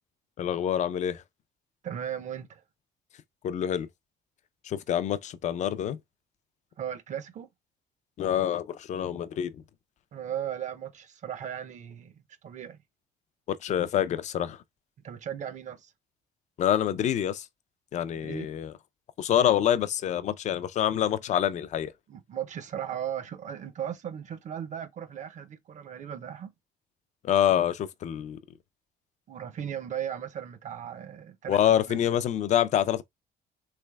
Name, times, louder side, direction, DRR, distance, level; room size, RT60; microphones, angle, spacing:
voice 1, 0.4-1.2 3.4-3.9 4.6-6.0 8.2-9.5 13.6-14.6 16.6-17.5 17.9-18.7 19.2-21.9 27.2-28.4 31.5-33.0, left 10 dB, 45° left, 0.4 m, -26 dB
voice 2, 1.8-2.6 6.8-7.5 10.1-12.1 12.4-12.8 15.0-15.9 18.1-18.5 22.1-26.5 29.3-32.1, right 9 dB, 45° right, 0.5 m, -37 dB
3.2 x 3.2 x 2.2 m
cardioid pair, 110°, 17 cm